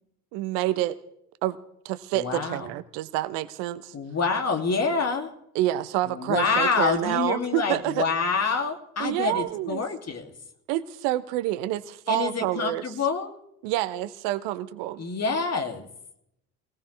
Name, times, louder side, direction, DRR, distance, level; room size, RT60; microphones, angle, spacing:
voice 1, 0.3-1.0 1.4-1.6 1.8-3.9 5.5-8.1 9.0-9.8 10.7-12.8 13.6-15.0, right 14 dB, 65° right, 15 dB, 0.9 m, -28 dB
voice 2, 2.1-2.7 3.9-5.3 6.1-10.3 12.1-13.3 15.0-15.9, left 4 dB, 35° left, 4 dB, 2.9 m, -27 dB
23.5 x 17.5 x 3.4 m, 0.78 s
hypercardioid pair, 55°, 45 cm